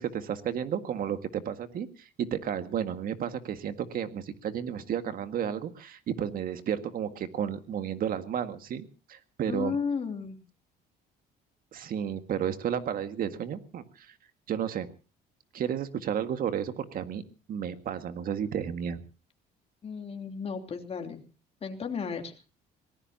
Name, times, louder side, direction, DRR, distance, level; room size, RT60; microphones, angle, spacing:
voice 1, 0.0-1.9 2.2-9.8 11.7-14.1 14.5-14.9 15.5-17.2 17.5-19.0, right 9 dB, 60° right, 9 dB, 1.8 m, -32 dB
voice 2, 9.5-10.4 19.8-21.2 21.6-22.4, left 5 dB, 35° left, 4 dB, 3.2 m, -34 dB
25.5 x 18.5 x 2.9 m, 0.35 s
cardioid pair, 110°, 17 cm